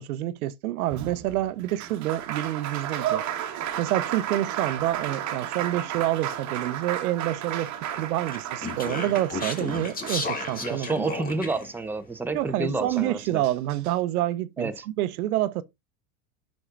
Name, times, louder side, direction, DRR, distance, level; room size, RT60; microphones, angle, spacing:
voice 1, 0.0-11.1 12.3-15.6, right 14 dB, 90° right, 0.7 m, -28 dB
Applause, 0.9-11.2 12.5-12.6 12.9-13.9, right 10 dB, 40° right, 1.4 m, -33 dB
Speech, 8.3-11.7, left 3 dB, 20° left, 1.7 m, -33 dB
voice 2, 10.6-13.4 14.6-14.8, right 3 dB, 5° right, 0.9 m, -29 dB
9.9 x 6.3 x 2.5 m
supercardioid pair, 115°, 43 cm